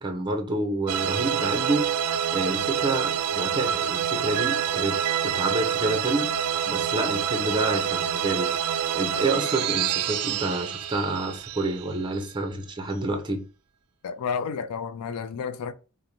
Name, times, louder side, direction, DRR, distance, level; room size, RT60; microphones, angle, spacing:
voice 1, 0.0-1.9 2.3-5.0 5.2-6.3 6.7-8.5 8.9-13.4, right 2 dB, 20° right, 0.5 m, -28 dB
sound 1, 0.9-12.3, right 8 dB, 90° right, 0.3 m, -27 dB
voice 2, 14.0-15.7, left 6 dB, 75° left, 0.3 m, -31 dB
2.5 x 2.0 x 2.9 m
head